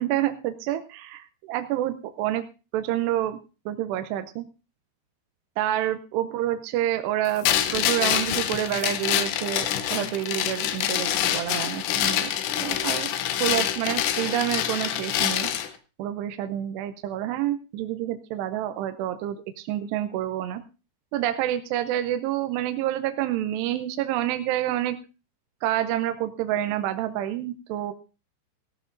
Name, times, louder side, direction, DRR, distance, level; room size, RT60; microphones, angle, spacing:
voice 1, 0.0-2.5 2.7-3.4 3.7-4.5 5.6-13.1 13.4-15.5 16.0-20.6 21.1-25.0 25.6-27.9, right 12 dB, 80° right, 8 dB, 2.7 m, -28 dB
sound 1, 7.4-15.7, left 11 dB, 80° left, 3.3 m, -26 dB
17.5 x 14.5 x 2.6 m, 0.31 s
omnidirectional pair, 5.2 m